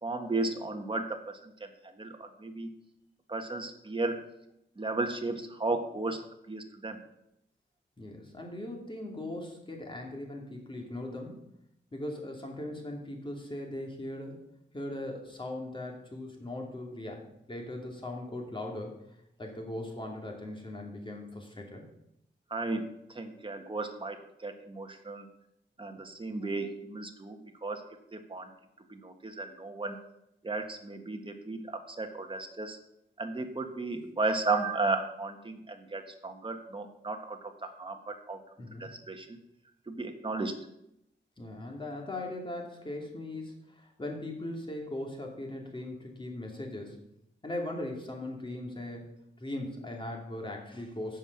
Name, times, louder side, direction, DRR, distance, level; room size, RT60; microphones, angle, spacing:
voice 1, 0.0-1.7 2.0-2.7 3.3-4.3 4.8-6.2 6.5-7.0 22.5-25.3 25.8-28.5 28.9-30.0 30.4-32.8 33.2-38.4 38.8-39.4 39.9-40.6, right 3 dB, 25° right, 4 dB, 1.5 m, -34 dB
voice 2, 8.0-11.5 11.9-14.4 14.7-19.0 19.4-21.9 38.6-38.9 41.4-47.1 47.4-49.1 49.4-51.2, left 1 dB, 25° left, 1 dB, 2.6 m, -39 dB
15.0 x 5.6 x 6.0 m, 0.81 s
wide cardioid pair, 110°, 19 cm